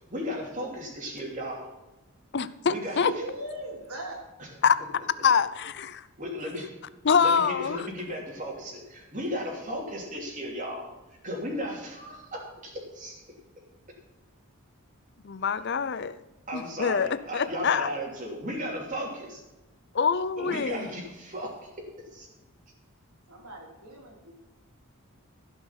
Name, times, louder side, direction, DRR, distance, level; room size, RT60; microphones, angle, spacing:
voice 1, 0.1-1.7 2.7-3.0 4.4-4.5 6.2-6.7 7.2-10.8 11.2-13.1 16.5-19.4 20.4-21.7 22.1-22.3, equal, 35° right, 3.0 m, -35 dB
voice 2, 2.3-3.1 4.6-4.7 5.2-6.0 7.0-7.8 15.2-16.2 16.5-17.9 19.9-20.9, left 6 dB, 50° left, 0.5 m, -25 dB
voice 3, 2.9-4.2 23.3-24.3, right 1 dB, 75° right, 3.3 m, -39 dB
15.5 x 5.9 x 5.9 m
head